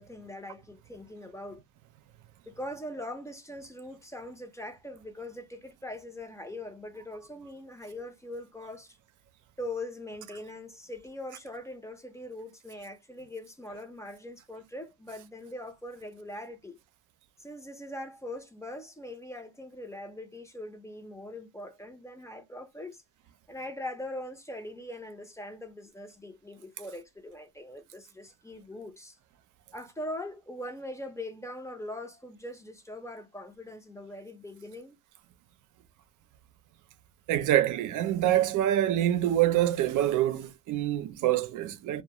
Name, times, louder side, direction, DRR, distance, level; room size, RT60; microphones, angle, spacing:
voice 1, 0.0-1.6 2.5-9.0 9.6-16.8 17.4-23.0 23.5-29.2 29.7-35.0, left 1 dB, 10° left, 0.6 m, -41 dB
voice 2, 37.3-42.0, right 12 dB, 80° right, 0.5 m, -26 dB
2.2 x 2.2 x 2.9 m
cardioid pair, 90°, 30 cm